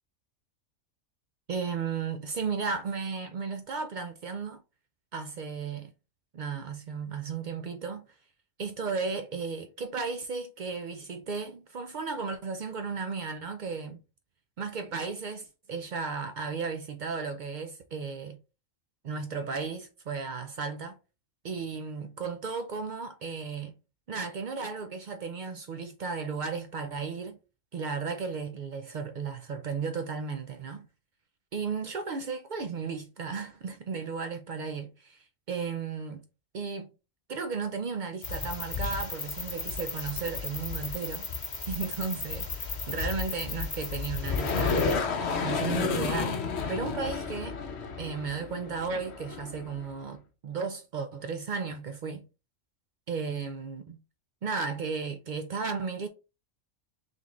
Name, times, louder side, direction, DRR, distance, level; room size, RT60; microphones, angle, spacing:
voice 1, 1.5-4.6 5.1-5.9 6.3-8.1 8.6-14.0 14.6-18.4 19.0-21.0 21.4-23.7 24.1-27.4 27.7-30.9 31.5-36.2 36.5-36.9 37.3-41.3 41.7-46.4 46.7-47.6 48.0-52.3 53.1-54.0 54.4-56.1, right 5 dB, 65° right, 0.4 m, -34 dB
sound 1, 38.2-44.9, left 5 dB, 40° left, 1.0 m, -35 dB
sound 2, 44.2-49.9, left 5 dB, 60° left, 0.9 m, -31 dB
3.6 x 3.6 x 3.1 m
omnidirectional pair, 1.3 m